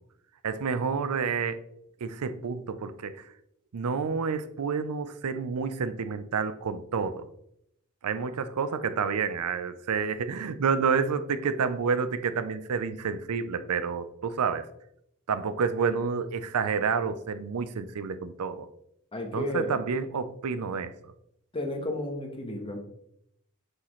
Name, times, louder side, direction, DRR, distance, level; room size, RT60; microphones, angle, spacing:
voice 1, 0.4-1.6 2.0-3.2 3.7-7.2 8.0-14.7 15.3-18.7 19.3-21.1, right 5 dB, 85° right, 12 dB, 0.5 m, -29 dB
voice 2, 19.1-19.8 21.5-22.8, left 1 dB, 25° left, 2 dB, 1.2 m, -32 dB
6.3 x 5.7 x 3.1 m, 0.75 s
head